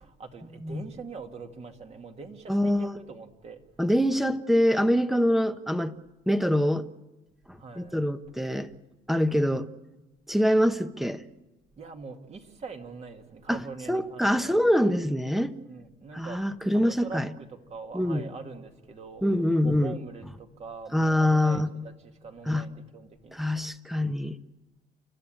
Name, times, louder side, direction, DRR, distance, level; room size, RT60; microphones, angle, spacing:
voice 1, 0.0-3.6 7.5-8.0 11.8-14.6 15.6-16.5 16.7-19.3 19.6-23.5, right 4 dB, 40° right, 2.3 m, -43 dB
voice 2, 2.5-2.9 3.8-5.9 6.3-6.9 7.5-8.7 9.1-9.7 10.3-11.2 13.5-13.6 13.9-15.5 16.1-17.3 17.9-18.3 19.2-19.9 20.9-21.7 22.5-22.6 23.3-24.4, equal, ahead, 1.0 m, -24 dB
29.5 x 12.5 x 9.0 m
cardioid pair, 110°, 17 cm